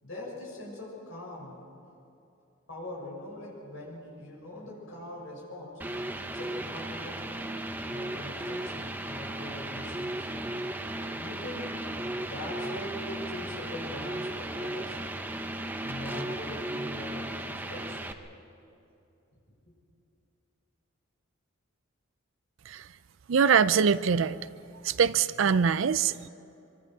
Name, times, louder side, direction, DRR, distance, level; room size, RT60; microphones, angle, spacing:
voice 1, 0.0-1.6 2.7-5.8 6.2-7.3 7.9-10.3 11.1-11.8 12.2-15.0 15.8-18.0, left 1 dB, 70° left, -3 dB, 7.0 m, -42 dB
sound 1, 5.8-18.1, right 1 dB, 10° right, 0.7 m, -36 dB
voice 2, 23.3-24.4 24.8-26.3, right 6 dB, 65° right, 14 dB, 0.4 m, -23 dB
24.5 x 24.0 x 4.8 m, 2.7 s
head